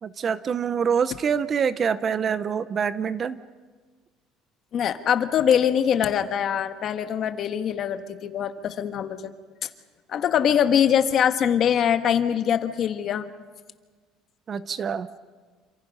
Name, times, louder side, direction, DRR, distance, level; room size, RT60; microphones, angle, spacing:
voice 1, 0.0-3.4 14.5-15.1, right 7 dB, 30° right, 14 dB, 0.6 m, -25 dB
voice 2, 4.7-9.3 9.6-9.7 10.1-13.3, left 9 dB, 40° left, 9 dB, 1.3 m, -23 dB
28.5 x 26.5 x 5.4 m, 1.4 s
cardioid pair, 160°, 0 cm